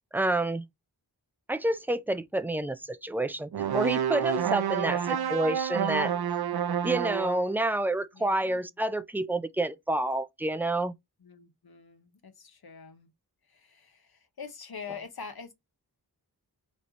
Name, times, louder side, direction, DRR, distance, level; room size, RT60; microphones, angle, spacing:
voice 1, 0.1-0.6 1.5-5.0 5.3-6.1 6.8-10.9, right 1 dB, 5° right, 0.4 m, -28 dB
sound 1, 3.5-7.5, right 9 dB, 70° right, 0.6 m, -29 dB
voice 2, 4.7-5.2 8.1-8.7 11.2-13.1 13.4-15.5, left 5 dB, 70° left, 1.0 m, -45 dB
4.4 x 3.1 x 2.6 m
wide cardioid pair, 70°, 39 cm